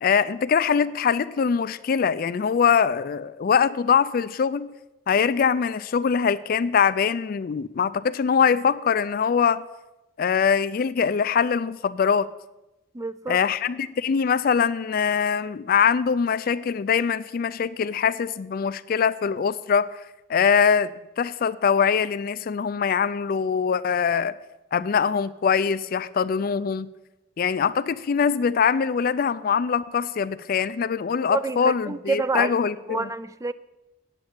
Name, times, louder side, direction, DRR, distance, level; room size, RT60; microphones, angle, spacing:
voice 1, 0.0-4.7 5.1-9.6 10.2-12.3 13.3-20.0 20.3-24.3 24.7-26.9 27.4-33.1, left 6 dB, 50° left, 15 dB, 0.4 m, -23 dB
voice 2, 12.9-13.4 31.3-32.5 32.9-33.5, right 3 dB, 15° right, 15 dB, 0.4 m, -28 dB
8.8 x 8.8 x 7.3 m, 0.98 s
head